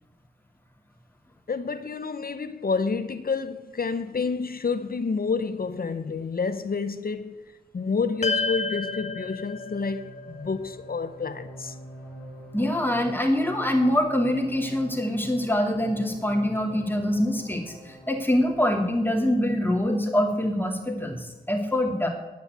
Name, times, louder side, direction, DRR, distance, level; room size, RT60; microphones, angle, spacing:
voice 1, 1.5-7.4 7.7-11.7, left 4 dB, 65° left, 0.7 m, -29 dB
sound 1, 7.9-18.7, right 1 dB, 75° right, 5.6 m, -45 dB
sound 2, 8.2-12.7, left 4 dB, 45° left, 1.5 m, -33 dB
voice 2, 12.5-22.1, left 1 dB, 10° left, 2.4 m, -24 dB
9.5 x 8.7 x 9.6 m
wide cardioid pair, 70°, 16 cm